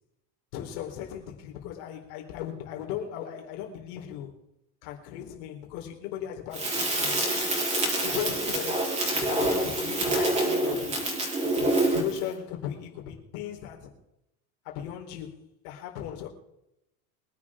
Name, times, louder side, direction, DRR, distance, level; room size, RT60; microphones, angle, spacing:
voice 1, 0.5-4.3 4.8-7.2 8.0-11.1 11.4-13.9 14.6-16.3, left 10 dB, 85° left, 4.1 m, -37 dB
Crackle, 6.5-12.2, right 1 dB, 15° right, 3.7 m, -26 dB
23.5 x 11.0 x 3.7 m
cardioid pair, 155°, 44 cm